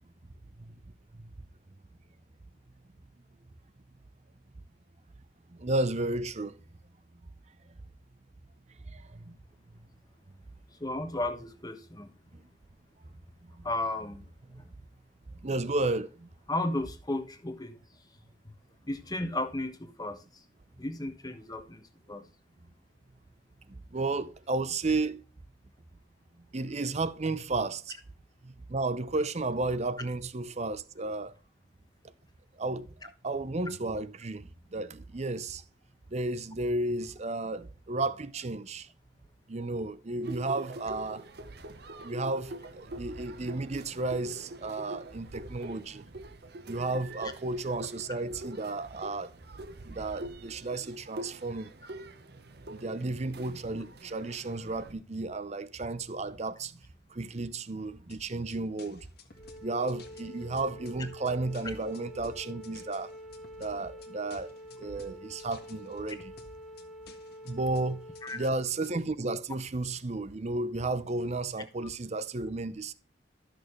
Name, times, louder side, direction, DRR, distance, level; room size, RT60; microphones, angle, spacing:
voice 1, 5.5-6.6 7.7-7.8 8.9-9.4 12.3-12.4 13.5-13.6 14.5-14.7 15.3-16.3 23.7-25.2 26.5-27.9 28.4-31.4 32.6-35.6 36.1-38.9 39.5-41.2 42.0-46.0 46.7-49.3 49.8-51.7 52.7-56.8 57.1-59.1 59.6-63.1 63.6-66.3 67.4-68.0 68.3-72.9, right 2 dB, 35° right, 0.7 m, -33 dB
voice 2, 10.8-12.1 13.6-14.3 14.6-14.7 16.5-17.8 18.9-20.4 20.8-21.8 22.1-22.3 47.2-47.3 66.1-66.2 68.2-68.5, left 2 dB, 20° left, 1.2 m, -34 dB
sound 1, 40.2-54.9, right 1 dB, 60° right, 1.0 m, -44 dB
sound 2, 58.1-69.1, left 3 dB, 55° left, 1.5 m, -54 dB
Wind instrument woodwind instrument, 59.3-68.5, equal, ahead, 1.8 m, -47 dB
13.0 x 6.5 x 3.2 m
head